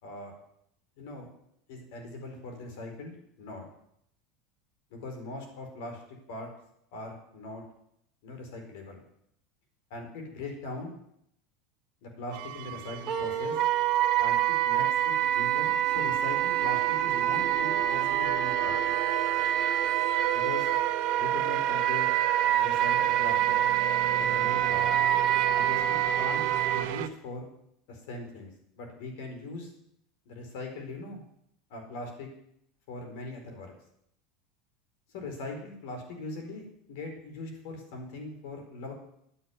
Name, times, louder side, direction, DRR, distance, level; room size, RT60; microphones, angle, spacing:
voice 1, 0.0-0.3 1.0-1.3 1.7-3.7 4.9-6.0 6.3-6.5 6.9-7.6 8.2-9.0 9.9-10.9 12.0-13.6 14.2-18.9 20.3-20.7 21.2-22.1 22.6-23.6 24.1-25.0 25.5-25.8 26.2-27.5 27.9-28.5 28.8-29.7 30.3-31.2 31.7-32.3 32.9-33.7 35.1-38.9, left 2 dB, 75° left, 4 dB, 4.6 m, -40 dB
sound 1, 12.3-27.1, right 10 dB, 70° right, 1.1 m, -36 dB
Wind instrument woodwind instrument, 13.1-26.8, right 12 dB, 35° right, 1.6 m, -26 dB
10.0 x 8.5 x 9.5 m, 0.75 s
supercardioid pair, 130°, 0 cm